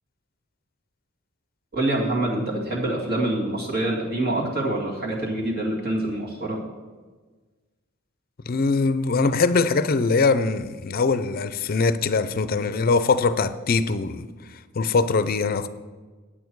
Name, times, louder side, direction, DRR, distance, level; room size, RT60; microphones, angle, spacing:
voice 1, 1.7-6.6, right 1 dB, 50° right, 2.2 m, -26 dB
voice 2, 8.4-15.7, left 4 dB, 45° left, 0.5 m, -22 dB
9.4 x 8.5 x 4.6 m
head